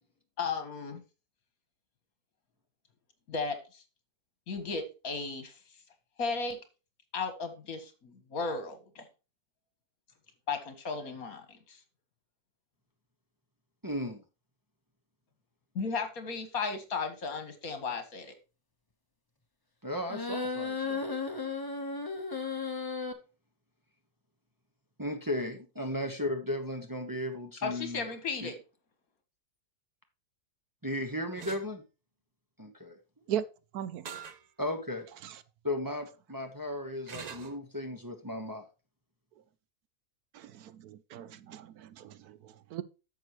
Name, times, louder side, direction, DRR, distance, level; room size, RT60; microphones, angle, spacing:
voice 1, 0.4-1.0 3.3-3.8 4.5-5.5 6.2-6.6 7.1-9.0 10.5-11.8 15.8-18.3 27.6-28.5, left 4 dB, 60° left, 2.0 m, -35 dB
voice 2, 13.8-14.2 19.8-21.1 25.0-28.0 28.4-28.5 30.8-31.8 32.6-33.0 34.6-35.1 35.6-38.6, left 1 dB, 15° right, 1.0 m, -35 dB
sound 1, 20.1-23.1, left 4 dB, 15° left, 1.0 m, -34 dB
sound 2, 31.4-31.7 34.0-34.4 35.0-35.1 37.1-37.6, right 6 dB, 55° right, 0.4 m, -43 dB
voice 3, 33.7-34.1 35.2-35.4 40.3-42.8, right 10 dB, 75° right, 1.1 m, -38 dB
10.5 x 7.1 x 3.1 m
omnidirectional pair, 1.7 m